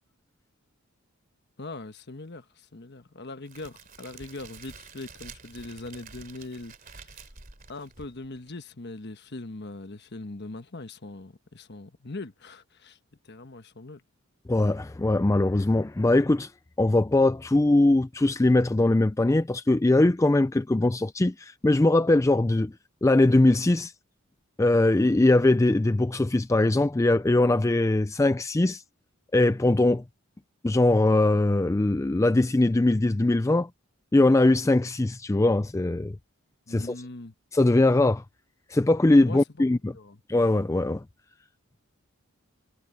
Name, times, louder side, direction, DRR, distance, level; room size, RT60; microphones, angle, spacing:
voice 1, 1.6-7.3 7.7-13.0 13.2-14.0 36.7-37.3 39.2-39.6 39.9-40.2, left 2 dB, 50° left, 1.2 m, -41 dB
Crackle, 3.5-8.5, right 5 dB, 40° right, 3.0 m, -48 dB
voice 2, 14.5-16.5 16.8-22.7 23.0-23.9 24.6-28.8 29.3-30.0 30.6-33.7 34.1-36.2 36.7-36.9 37.5-38.2 38.7-39.9 40.3-41.0, left 2 dB, 15° left, 0.3 m, -21 dB
head